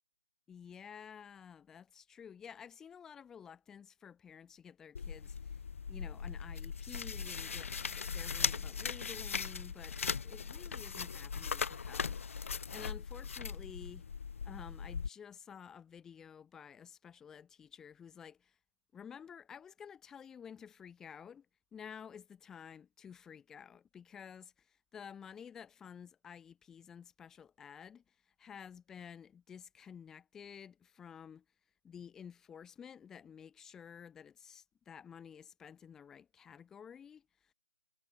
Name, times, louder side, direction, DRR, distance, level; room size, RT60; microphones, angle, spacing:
voice 1, 0.5-5.6 5.9-14.0 14.4-18.6 18.9-21.5 21.7-31.4 31.8-37.5, left 7 dB, 5° left, 0.8 m, -52 dB
sound 1, 5.0-15.1, left 6 dB, 55° left, 0.6 m, -39 dB
hypercardioid pair, 165°, 8 cm